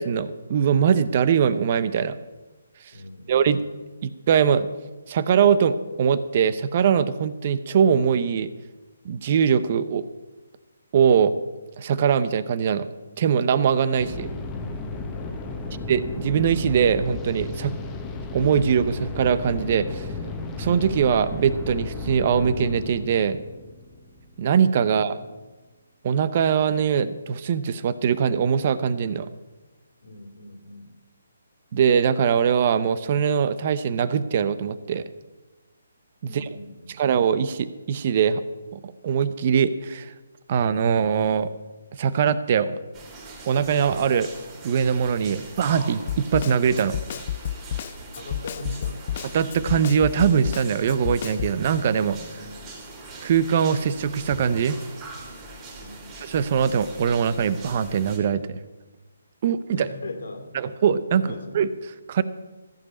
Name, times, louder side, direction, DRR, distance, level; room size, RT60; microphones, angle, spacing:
voice 1, 0.0-2.2 3.3-3.6 4.0-4.7 5.1-8.5 9.0-10.0 10.9-11.4 11.8-12.9 13.2-14.3 15.9-17.7 18.3-20.1 20.6-23.4 24.4-25.2 26.0-29.3 31.7-35.0 36.3-36.4 37.0-38.4 38.7-40.1 40.5-41.5 42.0-42.8 43.5-44.3 44.6-47.0 49.3-52.2 53.2-54.8 56.3-58.6 59.4-59.9 60.5-61.3 61.5-61.7 62.1-62.2, right 7 dB, 40° right, 15 dB, 0.7 m, -22 dB
voice 2, 2.9-3.6 15.2-15.9 24.9-25.3 30.0-31.0 36.2-37.0 48.1-49.1 52.3-52.8 55.7-56.2 59.7-60.7 61.2-61.7, left 1 dB, 70° left, 3 dB, 2.6 m, -40 dB
Wet distortion, 14.0-24.8, left 3 dB, 15° left, 1.2 m, -34 dB
sound 1, 42.9-58.2, right 2 dB, 20° right, 2.9 m, -41 dB
Snare drum, 46.1-51.6, left 11 dB, 40° left, 0.4 m, -31 dB
14.5 x 5.3 x 8.2 m, 1.2 s
hypercardioid pair, 150°, 0 cm